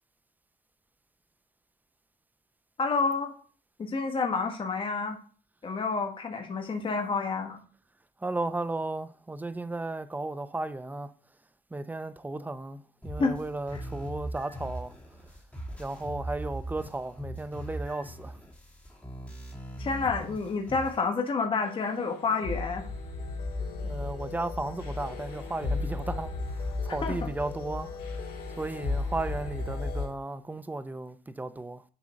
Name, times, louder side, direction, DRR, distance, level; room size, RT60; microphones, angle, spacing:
voice 1, 2.8-3.3 3.8-5.2 5.6-7.6 13.2-13.3 13.7-13.8 19.8-22.8 27.0-27.2, left 4 dB, 30° left, 1.4 m, -29 dB
voice 2, 8.2-11.1 11.7-14.9 15.8-18.4 23.8-28.2 28.6-31.8, right 2 dB, 10° right, 0.5 m, -35 dB
sound 1, 13.0-21.0, right 1 dB, 10° left, 2.5 m, -40 dB
sound 2, 21.6-30.1, left 3 dB, 60° left, 3.7 m, -35 dB
7.1 x 3.8 x 6.4 m
cardioid pair, 110°, 17 cm